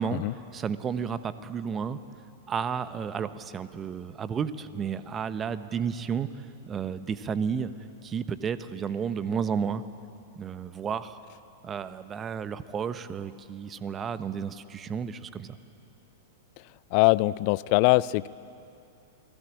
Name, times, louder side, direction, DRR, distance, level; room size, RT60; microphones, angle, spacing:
voice 1, 0.5-2.0 2.5-6.3 6.7-7.7 8.0-9.8 10.4-11.2 11.6-15.6, right 7 dB, 25° right, 13 dB, 1.1 m, -32 dB
voice 2, 16.9-18.3, left 21 dB, 45° left, 20 dB, 0.5 m, -22 dB
28.5 x 19.5 x 8.6 m, 2.6 s
figure-of-eight pair, 100°, 0 cm